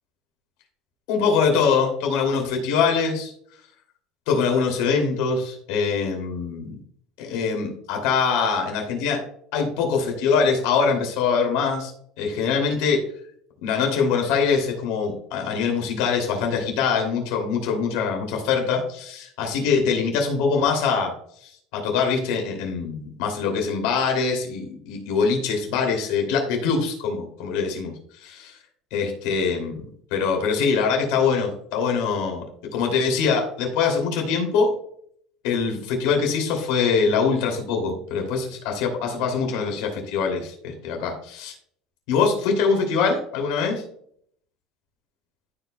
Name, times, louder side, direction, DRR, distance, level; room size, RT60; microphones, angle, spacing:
voice 1, 1.1-3.3 4.3-6.8 7.2-9.2 9.5-11.9 12.2-13.0 13.6-21.1 21.4-28.5 28.9-32.4 32.7-34.7 35.4-41.5 42.1-43.8, left 5 dB, 75° left, 2 dB, 2.7 m, -23 dB
14.5 x 5.0 x 2.2 m, 0.64 s
supercardioid pair, 105°, 0 cm